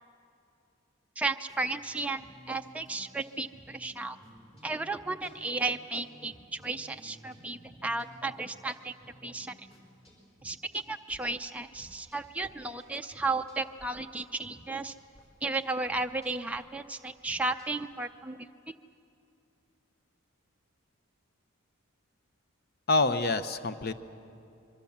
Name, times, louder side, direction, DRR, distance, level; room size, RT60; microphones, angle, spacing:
voice 1, 1.2-2.2 2.5-4.2 4.6-8.9 9.2-9.7 10.4-14.9 15.4-18.4 18.7-18.8, right 3 dB, 5° right, 5 dB, 0.5 m, -34 dB
sound 1, 1.5-12.5 12.8-13.9 14.2-17.9, equal, 30° left, 4.7 m, -56 dB
voice 2, 22.9-23.9, left 3 dB, 45° left, 11 dB, 0.8 m, -26 dB
25.0 x 22.5 x 7.2 m, 2.7 s
head